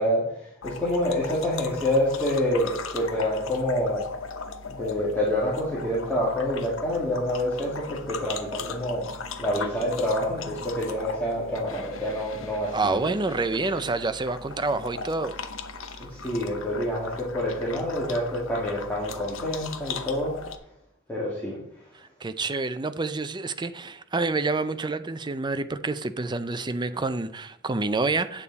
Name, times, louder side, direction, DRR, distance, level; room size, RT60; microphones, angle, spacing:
voice 1, 0.0-4.1 4.7-9.1 9.4-13.1 16.1-20.3 21.1-21.9, left 1 dB, 10° left, 2.3 m, -27 dB
sound 1, 0.6-20.6, left 4 dB, 75° left, 0.9 m, -38 dB
voice 2, 12.7-15.4 22.2-28.4, right 3 dB, 20° right, 0.5 m, -28 dB
9.0 x 8.5 x 4.1 m
head